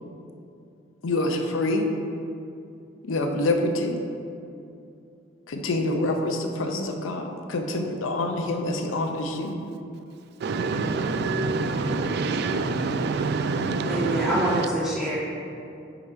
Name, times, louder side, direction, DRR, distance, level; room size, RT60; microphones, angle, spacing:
voice 1, 1.0-1.9 3.0-4.0 5.5-9.6, left 2 dB, 75° left, 4 dB, 0.6 m, -26 dB
voice 2, 10.4-14.7, right 3 dB, 55° right, 8 dB, 0.3 m, -26 dB
voice 3, 13.9-15.2, right 1 dB, 5° right, -9 dB, 0.6 m, -25 dB
4.8 x 4.3 x 5.1 m, 2.6 s
head